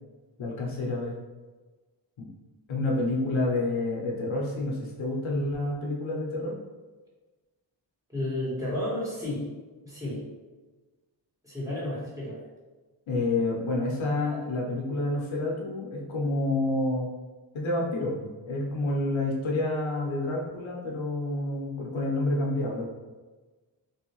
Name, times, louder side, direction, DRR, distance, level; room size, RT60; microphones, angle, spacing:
voice 1, 0.4-1.1 2.2-2.3 2.7-6.5 13.1-17.1 17.5-22.9, left 2 dB, 75° left, -1 dB, 0.8 m, -29 dB
voice 2, 8.1-9.5 9.8-10.2 11.4-12.4, left 1 dB, 5° right, -8 dB, 1.5 m, -32 dB
3.2 x 2.7 x 2.9 m, 1.3 s
cardioid pair, 75°, 47 cm